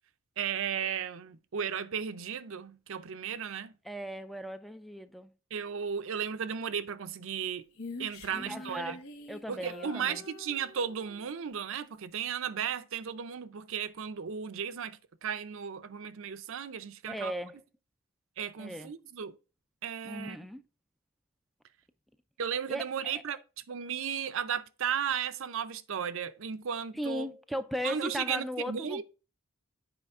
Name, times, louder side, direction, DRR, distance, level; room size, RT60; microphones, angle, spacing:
voice 1, 0.4-3.7 5.5-7.6 8.0-9.0 9.5-17.3 18.4-19.3 19.8-20.4 22.4-23.4 23.7-27.3 27.8-29.0, right 7 dB, 65° right, 0.5 m, -35 dB
voice 2, 3.8-5.3 8.3-9.0 9.3-10.2 17.1-17.6 18.6-18.9 20.0-20.6 22.7-23.2 26.9-29.0, equal, ahead, 0.3 m, -37 dB
Female singing, 7.7-11.3, left 2 dB, 75° left, 1.3 m, -45 dB
7.9 x 5.0 x 3.5 m
head